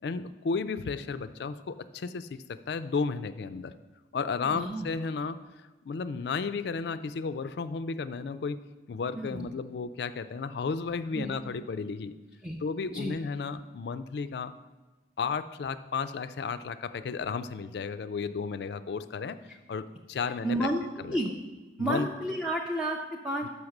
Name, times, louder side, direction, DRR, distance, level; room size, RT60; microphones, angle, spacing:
voice 1, 0.0-3.7 4.1-5.4 5.8-8.6 8.9-12.1 12.6-14.5 15.2-19.4 19.7-20.7 21.0-21.2 21.8-22.1 23.4-23.5, left 5 dB, 65° left, 13 dB, 0.4 m, -33 dB
voice 2, 4.5-4.9 9.1-9.5 11.1-11.3 12.4-12.6 12.9-13.1 20.4-20.8 21.1-21.3 21.8-23.5, right 1 dB, 5° right, -1 dB, 0.4 m, -31 dB
6.5 x 5.6 x 5.9 m, 1.2 s
head